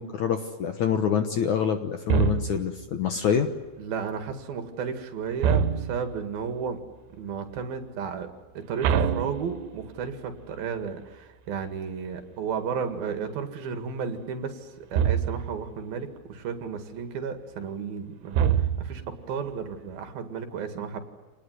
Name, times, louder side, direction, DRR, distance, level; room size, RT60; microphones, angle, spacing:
voice 1, 0.0-3.5, left 7 dB, 65° left, 7 dB, 2.1 m, -26 dB
sound 1, 2.1-2.8 5.4-6.2 8.8-10.0 14.9-15.6 18.3-19.1, right 7 dB, 90° right, 3.2 m, -25 dB
voice 2, 3.8-6.8 7.1-8.3 8.6-21.0, right 6 dB, 65° right, 7 dB, 3.8 m, -33 dB
27.5 x 20.0 x 9.5 m, 1.3 s
omnidirectional pair, 4.7 m